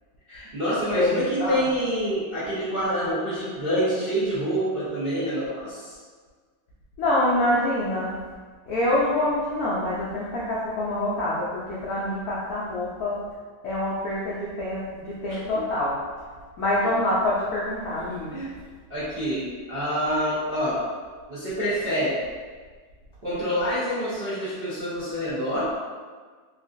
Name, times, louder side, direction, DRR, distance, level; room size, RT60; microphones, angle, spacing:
voice 1, 0.3-6.0 15.3-15.6 18.3-18.5 18.9-20.8 21.3-22.2 23.2-25.7, equal, 50° right, -13 dB, 0.6 m, -27 dB
voice 2, 0.9-1.6 7.0-8.1 8.7-13.2 13.6-16.0 16.6-18.4, left 1 dB, 75° left, -7 dB, 0.8 m, -26 dB
3.7 x 2.5 x 2.4 m, 1.5 s
omnidirectional pair, 2.3 m